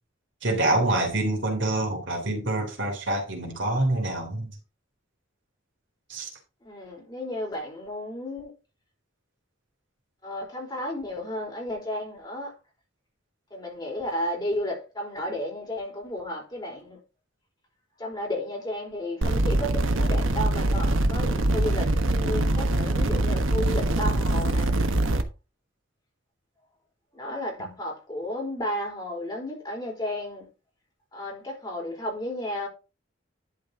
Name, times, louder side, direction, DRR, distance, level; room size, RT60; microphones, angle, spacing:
voice 1, 0.4-4.5 6.1-6.3, right 1 dB, 65° right, 3.3 m, -26 dB
voice 2, 6.6-8.5 10.2-12.5 13.5-17.0 18.0-24.7 27.1-30.5 31.1-32.7, left 1 dB, 20° left, 3.9 m, -33 dB
sound 1, 19.2-25.2, right 1 dB, 80° right, 1.2 m, -23 dB
11.5 x 5.3 x 3.8 m
head